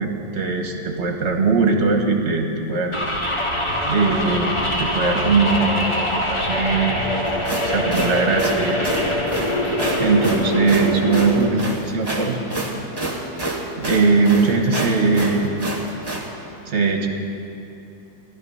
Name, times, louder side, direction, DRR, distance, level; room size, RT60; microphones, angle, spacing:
voice 1, 0.0-3.0 3.8-7.2 7.6-8.9 10.0-12.4 13.8-15.6 16.7-17.1, right 4 dB, 40° right, 3 dB, 1.3 m, -20 dB
sound 1, 2.9-11.5, left 1 dB, 20° left, 0.9 m, -23 dB
sound 2, 7.3-16.3, right 2 dB, 15° right, 1.3 m, -28 dB
14.5 x 11.5 x 5.5 m, 2.9 s
omnidirectional pair, 2.0 m